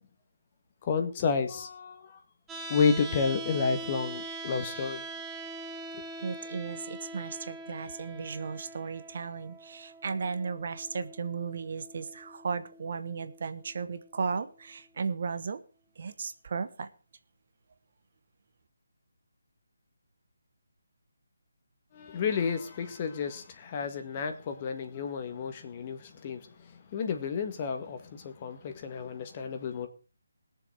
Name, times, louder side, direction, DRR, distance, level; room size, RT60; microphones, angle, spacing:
voice 1, 0.8-2.2 2.7-5.0 5.9-6.0 21.9-29.9, left 5 dB, 30° left, 1.8 m, -31 dB
sound 1, 2.5-14.5, right 2 dB, 10° right, 1.1 m, -43 dB
voice 2, 6.2-15.6 16.0-16.9, right 5 dB, 50° right, 1.2 m, -35 dB
20.5 x 6.9 x 4.9 m
figure-of-eight pair, 150°, 0 cm